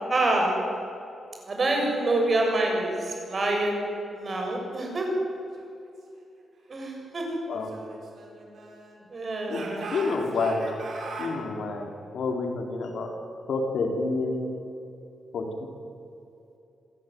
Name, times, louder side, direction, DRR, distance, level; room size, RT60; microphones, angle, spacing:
voice 1, 0.1-0.6 1.5-3.8 4.1-5.1 6.7-7.4 9.1-9.9, right 2 dB, 35° right, 1 dB, 6.9 m, -26 dB
Speech / Shout, 7.5-9.0 9.5-11.4, right 3 dB, 60° right, 5.9 m, -39 dB
voice 2, 9.9-10.7 11.2-13.1 13.5-14.5 15.3-15.4, left 3 dB, 65° left, 2 dB, 4.1 m, -28 dB
28.0 x 16.0 x 9.6 m, 2.7 s
wide cardioid pair, 140°, 0 cm